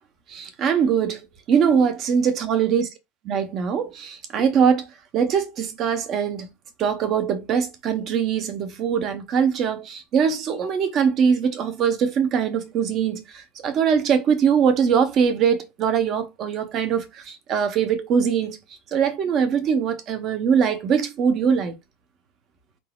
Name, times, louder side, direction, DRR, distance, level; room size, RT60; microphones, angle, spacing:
voice 1, 0.3-2.9 3.3-4.9 5.1-6.5 6.8-18.6 18.9-21.7, right 7 dB, 30° right, 0.7 m, -22 dB
4.7 x 3.7 x 2.3 m
supercardioid pair, 170°, 0 cm